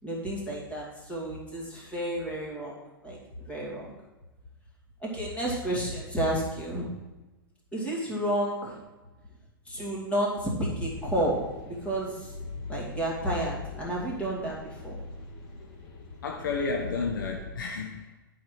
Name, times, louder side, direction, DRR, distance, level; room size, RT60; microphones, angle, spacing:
voice 1, 0.0-4.0 5.0-6.9 7.7-8.8 9.7-12.3 12.7-15.0, right 1 dB, 10° left, -4 dB, 2.4 m, -31 dB
sound 1, 10.9-17.5, left 3 dB, 35° left, 1.9 m, -42 dB
voice 2, 16.2-18.2, left 4 dB, 65° left, 2 dB, 0.8 m, -31 dB
11.0 x 4.7 x 4.8 m, 1.1 s
figure-of-eight pair, 100°, 12 cm